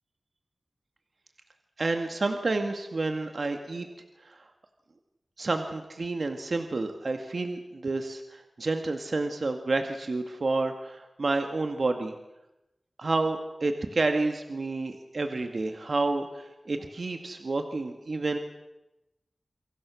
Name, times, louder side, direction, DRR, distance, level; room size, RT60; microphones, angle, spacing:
voice 1, 1.8-3.9 4.2-4.4 5.4-12.1 13.0-18.4, right 3 dB, 65° right, 6 dB, 2.0 m, -29 dB
29.0 x 24.5 x 6.4 m, 0.95 s
cardioid pair, 45°, 0 cm